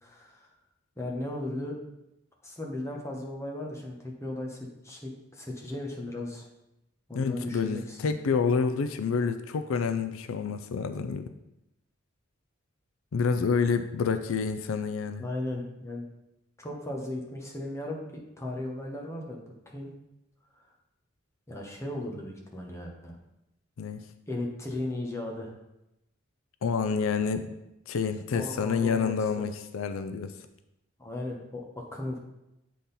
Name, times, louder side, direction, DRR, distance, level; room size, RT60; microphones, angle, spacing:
voice 1, 0.0-0.5 1.0-1.8 2.4-6.5 7.1-8.1 15.2-16.0 16.6-19.9 20.5-20.6 21.5-23.2 24.3-25.6 28.3-29.4 31.0-32.2, left 1 dB, 15° left, -1 dB, 1.1 m, -36 dB
voice 2, 7.1-11.3 13.1-15.2 23.8-24.0 26.6-27.5 27.9-30.3, left 5 dB, 80° left, 10 dB, 0.4 m, -28 dB
8.4 x 3.8 x 4.1 m, 0.89 s
head